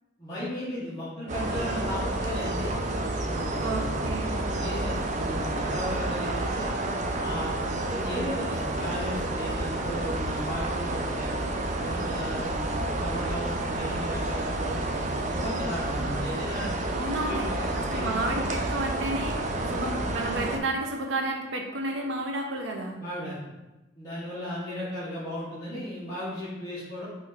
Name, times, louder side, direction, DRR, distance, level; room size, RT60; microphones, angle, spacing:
voice 1, 0.2-4.0 4.5-6.7 7.2-11.3 11.8-16.7 17.3-18.5 23.0-23.4 23.9-27.1, left 1 dB, 20° left, -12 dB, 1.2 m, -36 dB
sound 1, 1.3-20.6, right 2 dB, 40° right, 0.4 m, -30 dB
voice 2, 3.5-4.4 17.0-17.5 17.7-23.0, right 2 dB, 80° right, 2 dB, 0.8 m, -31 dB
4.4 x 2.8 x 4.0 m, 1.1 s
head